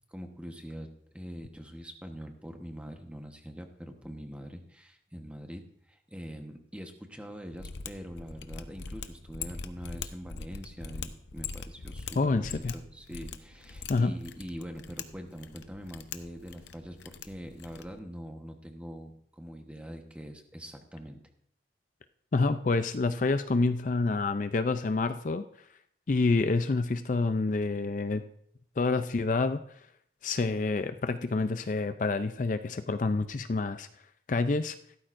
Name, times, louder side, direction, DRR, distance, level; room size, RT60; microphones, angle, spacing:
voice 1, 0.1-21.2, equal, 5° right, 4 dB, 1.1 m, -43 dB
Mechanisms, 7.5-18.0, left 5 dB, 80° left, 0.7 m, -42 dB
voice 2, 12.2-12.7 13.9-14.1 22.3-25.4 26.1-28.2 28.8-29.6 30.2-33.9 34.3-34.7, left 3 dB, 45° left, 10 dB, 0.4 m, -28 dB
16.0 x 13.0 x 2.6 m, 0.67 s
head